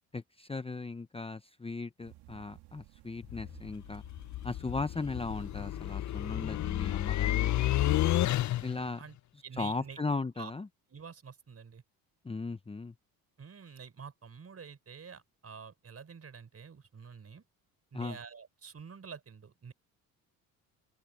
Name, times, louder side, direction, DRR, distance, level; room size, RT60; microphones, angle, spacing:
voice 1, 0.1-4.0 4.4-7.9 8.6-9.0 9.6-10.7 12.2-12.9 17.9-18.2, left 3 dB, 15° left, 0.9 m, -37 dB
sound 1, 2.0-8.7, right 17 dB, 75° right, 3.0 m, -57 dB
sound 2, 3.2-8.9, left 14 dB, 45° left, 0.7 m, -31 dB
voice 2, 9.4-10.0 10.4-10.5 10.9-11.8 13.4-17.4 17.9-19.7, right 6 dB, 35° right, 4.4 m, -48 dB
open air
supercardioid pair, 65°, 40 cm